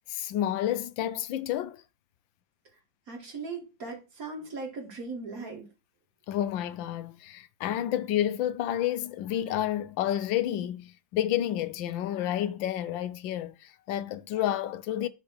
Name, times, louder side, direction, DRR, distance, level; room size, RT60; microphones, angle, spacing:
voice 1, 0.1-1.8 6.3-15.1, left 12 dB, 90° left, 1.4 m, -30 dB
voice 2, 3.1-5.7, right 3 dB, 50° right, 2.6 m, -38 dB
7.3 x 3.5 x 6.3 m
omnidirectional pair, 2.0 m